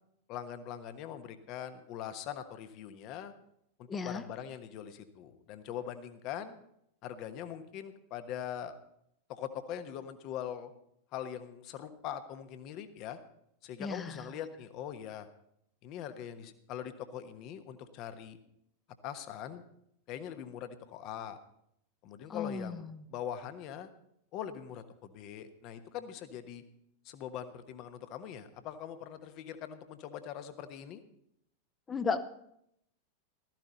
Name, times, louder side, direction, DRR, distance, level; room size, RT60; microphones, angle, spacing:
voice 1, 0.3-3.3 3.8-6.6 7.0-8.7 9.3-10.7 11.1-13.2 13.6-15.3 15.8-18.4 19.0-19.6 20.1-21.4 22.0-22.8 23.1-23.9 24.3-26.6 27.0-31.0, left 9 dB, 40° left, 10 dB, 1.2 m, -42 dB
voice 2, 3.9-4.2 13.8-14.2 22.3-23.0 31.9-32.2, left 5 dB, 20° left, 12 dB, 0.9 m, -35 dB
15.0 x 13.5 x 4.1 m, 0.75 s
figure-of-eight pair, 90°, 0 cm